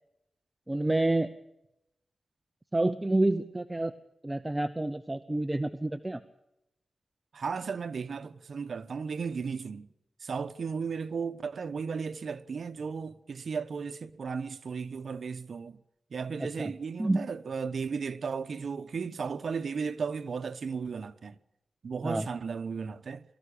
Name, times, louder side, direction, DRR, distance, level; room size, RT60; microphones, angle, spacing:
voice 1, 0.7-1.3 2.7-3.9 4.2-6.2 16.4-16.7 17.0-17.3 22.0-22.3, right 2 dB, 15° right, 0.8 m, -28 dB
voice 2, 7.3-9.9 10.2-15.8 16.1-21.4 21.8-23.2, right 5 dB, 75° right, 1.0 m, -35 dB
23.0 x 14.5 x 8.5 m
wide cardioid pair, 105°, 0 cm